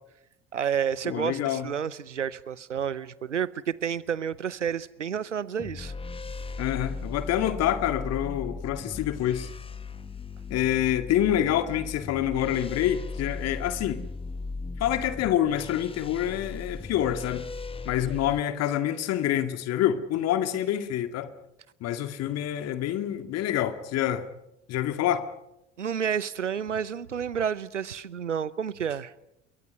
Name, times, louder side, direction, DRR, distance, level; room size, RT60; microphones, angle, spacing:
voice 1, 0.5-5.9 25.8-29.1, right 8 dB, 85° right, 0.8 m, -30 dB
voice 2, 1.0-1.7 6.6-9.5 10.5-14.0 14.8-17.4 17.8-21.3 21.8-24.3 24.7-25.3, left 11 dB, 45° left, 2.2 m, -27 dB
sound 1, 5.6-18.4, left 4 dB, 15° left, 1.4 m, -37 dB
28.0 x 23.0 x 5.5 m
figure-of-eight pair, 70°, 35 cm